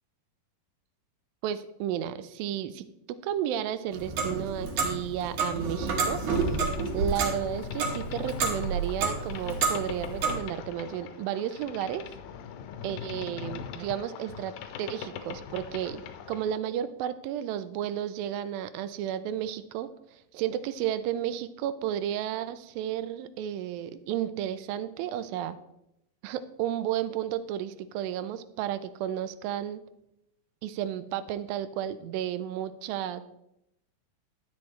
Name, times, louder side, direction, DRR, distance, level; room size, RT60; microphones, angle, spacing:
voice 1, 1.4-6.2 6.9-12.0 12.8-14.5 14.8-16.0 16.3-25.6 26.2-29.8 30.6-33.2, right 10 dB, 85° right, 13 dB, 2.3 m, -32 dB
Clock, 3.9-10.4, right 4 dB, 65° right, 2.7 m, -30 dB
Boat Water vehicle, 6.1-16.6, left 8 dB, 85° left, 2.4 m, -41 dB
10.5 x 8.5 x 3.2 m, 0.82 s
omnidirectional pair, 4.0 m